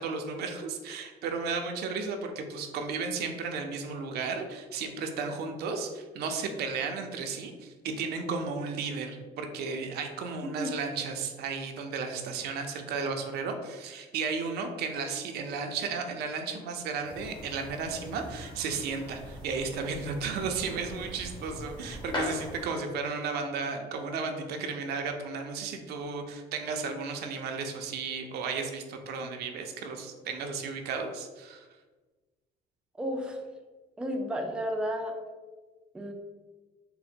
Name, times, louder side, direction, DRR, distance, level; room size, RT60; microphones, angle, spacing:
voice 1, 0.0-31.7, right 4 dB, 70° right, 4 dB, 0.5 m, -34 dB
sound 1, 17.0-22.7, left 1 dB, 25° left, 1.0 m, -41 dB
voice 2, 33.0-33.4 34.0-35.2 35.9-36.1, equal, 5° right, 2 dB, 0.4 m, -32 dB
3.7 x 2.1 x 4.2 m, 1.3 s
cardioid pair, 110°, 17 cm